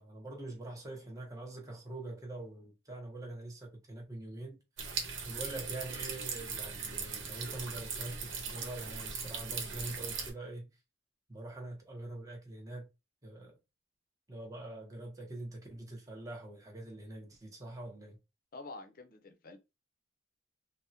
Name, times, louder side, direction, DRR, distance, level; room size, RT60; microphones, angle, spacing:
voice 1, 0.0-4.6 5.2-10.7 11.3-12.9 13.2-13.6 14.3-18.2, right 2 dB, 20° right, 0.9 m, -44 dB
sound 1, 4.8-10.3, right 5 dB, 85° right, 0.8 m, -39 dB
voice 2, 18.5-19.6, left 3 dB, 50° left, 0.6 m, -47 dB
3.5 x 2.0 x 2.7 m
head